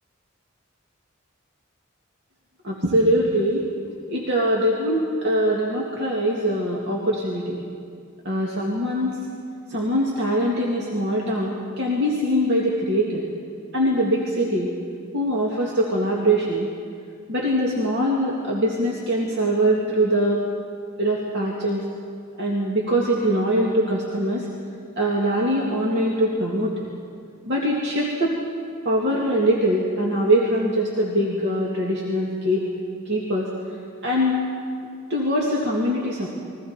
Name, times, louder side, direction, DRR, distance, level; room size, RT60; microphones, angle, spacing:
voice 1, 2.6-3.6 4.1-7.6 8.2-9.2 9.7-13.2 13.7-14.7 15.1-16.7 17.3-20.4 21.0-21.8 22.4-24.5 25.0-26.9 27.5-28.3 28.8-32.6 33.1-33.5 34.0-34.4 35.1-36.3, equal, 60° right, -3 dB, 2.4 m, -22 dB
29.5 x 22.0 x 4.4 m, 2.3 s
head